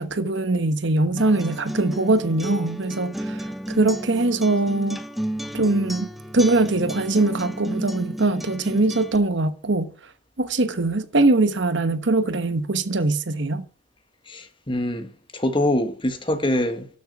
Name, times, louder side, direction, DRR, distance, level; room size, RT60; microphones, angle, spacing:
voice 1, 0.0-5.0 5.5-9.9 10.4-13.6, right 2 dB, 65° right, 1.1 m, -22 dB
Acoustic guitar, 1.2-9.2, right 1 dB, ahead, 0.6 m, -32 dB
voice 2, 14.3-16.9, left 1 dB, 25° left, 1.3 m, -24 dB
12.5 x 6.6 x 6.0 m
head